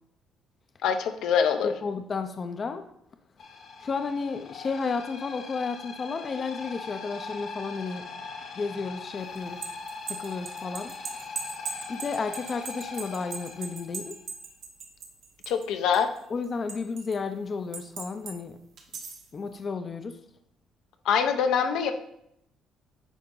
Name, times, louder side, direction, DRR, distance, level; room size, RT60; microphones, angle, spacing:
voice 1, 0.8-1.7 15.5-16.1 21.0-21.9, left 7 dB, 80° left, 6 dB, 0.8 m, -24 dB
voice 2, 1.6-2.8 3.8-8.0 8.6-9.6 10.1-10.9 11.9-14.1 16.3-18.6 19.3-20.2, left 4 dB, 35° left, 7 dB, 0.6 m, -32 dB
sound 1, 3.4-14.2, left 4 dB, 60° left, 1.2 m, -41 dB
sound 2, 9.4-15.7 15.9-17.1 17.7-18.3 18.8-19.3, right 5 dB, 65° right, 1.4 m, -38 dB
9.9 x 3.8 x 3.9 m, 0.74 s
cardioid pair, 110°, 0 cm